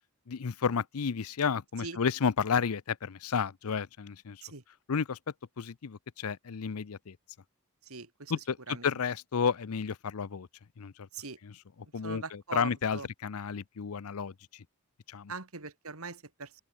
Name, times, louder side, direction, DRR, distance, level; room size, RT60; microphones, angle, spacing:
voice 1, 0.3-4.4 4.9-5.2 5.6-7.2 8.3-10.5 10.8-11.1 11.4-11.5 11.9-14.6 15.1-15.3, left 6 dB, 85° left, 0.6 m, -32 dB
voice 2, 7.9-8.3 8.7-8.9 11.1-11.4 12.0-13.1 15.3-16.6, right 4 dB, 80° right, 2.8 m, -41 dB
open air
head